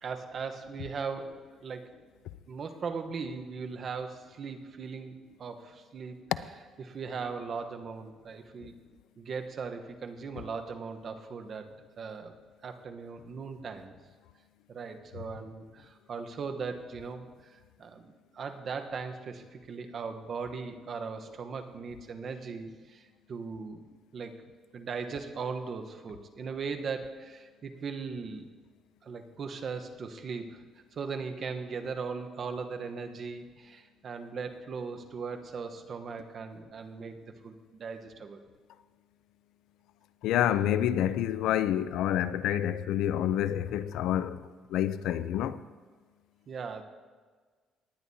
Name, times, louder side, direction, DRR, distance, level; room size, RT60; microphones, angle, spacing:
voice 1, 0.0-1.9 2.5-6.2 6.8-8.8 9.2-11.7 12.0-12.3 12.6-13.9 14.7-24.3 24.7-28.5 29.0-30.6 30.9-38.4 46.5-46.8, right 5 dB, 50° right, 1.0 m, -38 dB
voice 2, 40.2-44.4 44.7-45.6, left 11 dB, 80° left, 0.4 m, -28 dB
19.0 x 10.0 x 2.8 m
cardioid pair, 110°, 0 cm